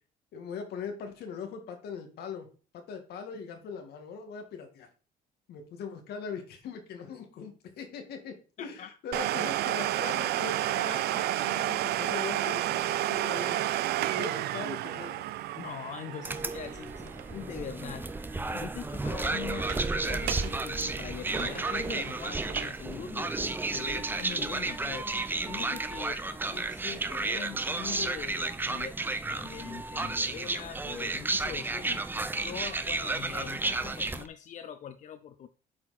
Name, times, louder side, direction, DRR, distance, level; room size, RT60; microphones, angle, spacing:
voice 1, 0.3-2.5 2.7-4.9 5.5-13.6 14.0-15.3 16.1-16.4, left 6 dB, 70° left, 5 dB, 2.1 m, -41 dB
voice 2, 8.6-9.0 15.5-18.1 18.5-25.1 25.4-29.0 29.3-32.0 32.4-35.5, left 9 dB, 45° left, 10 dB, 0.6 m, -42 dB
Domestic sounds home sounds, 9.1-18.6 18.8-18.9 19.5-19.9 20.2-20.5 20.9-22.9 23.4-23.5 24.2-24.3, right 14 dB, 70° right, 0.5 m, -31 dB
sound 1, 16.2-34.3, right 3 dB, 10° right, 0.6 m, -32 dB
8.6 x 4.6 x 4.2 m, 0.36 s
cardioid pair, 110°, 17 cm